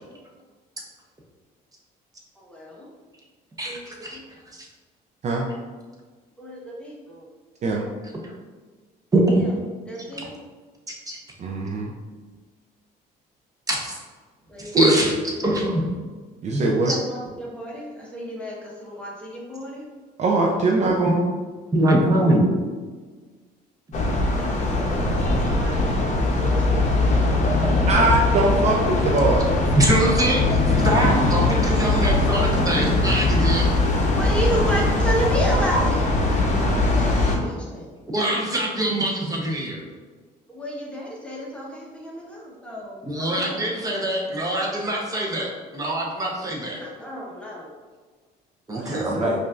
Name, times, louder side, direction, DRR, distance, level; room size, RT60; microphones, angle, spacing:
voice 1, 2.4-2.9 3.6-4.2 6.4-7.3 9.3-9.5 9.9-10.3 14.5-14.9 15.4-15.5 16.9-19.8 24.3-24.9 25.4-27.3 31.0-31.2 34.1-36.1 36.6-37.9 40.5-43.7 46.8-47.8 48.7-49.1, equal, 5° left, -4 dB, 0.9 m, -32 dB
voice 2, 3.6-4.2 4.5-4.7 9.1-9.4 11.1-11.2 13.7-13.9 14.6-15.8 16.5-17.0 21.7-22.4 24.3-24.4 29.7-33.7 38.1-39.8 43.0-46.8 48.7-49.3, right 1 dB, 20° right, -2 dB, 0.8 m, -23 dB
voice 3, 11.4-11.9 16.4-16.9 20.2-21.2 27.9-29.5 48.8-49.3, right 2 dB, 45° right, -1 dB, 0.4 m, -22 dB
sound 1, 23.9-37.4, left 2 dB, 45° left, 0.7 m, -21 dB
5.1 x 2.5 x 2.4 m, 1.4 s
cardioid pair, 110°, 17 cm